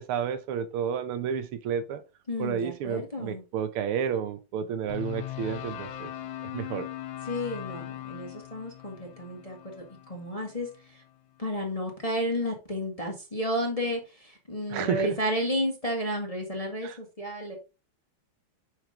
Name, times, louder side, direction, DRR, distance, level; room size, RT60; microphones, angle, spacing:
voice 1, 0.0-2.0 2.4-6.1 6.5-6.9 14.7-15.2 16.8-17.0, right 7 dB, 90° right, 1.8 m, -31 dB
voice 2, 2.3-3.4 7.2-11.0 11.4-17.6, equal, 20° left, 1.2 m, -32 dB
sound 1, 4.9-11.1, left 13 dB, 75° left, 1.6 m, -40 dB
6.3 x 5.0 x 3.7 m
omnidirectional pair, 2.3 m